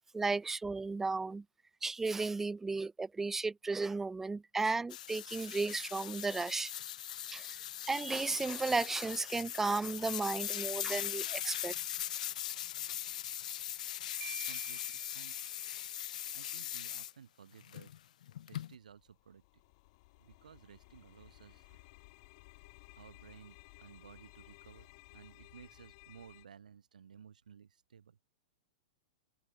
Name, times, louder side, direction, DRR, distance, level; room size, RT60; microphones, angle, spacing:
voice 1, 0.1-1.4 1.8-6.7 7.3-7.5 7.8-11.7, right 3 dB, 10° right, 0.3 m, -34 dB
sound 1, 4.9-17.1 17.6-18.8, left 11 dB, 70° left, 0.8 m, -40 dB
Marimba xylophone, 14.2-15.9, right 14 dB, 35° right, 2.6 m, -50 dB
voice 2, 14.4-15.4 16.3-17.9 18.5-19.4 20.2-22.0 23.0-28.2, right 7 dB, 85° right, 3.2 m, -56 dB
sound 2, 18.7-26.5, left 25 dB, 50° left, 2.8 m, -58 dB
hypercardioid pair, 120°, 4 cm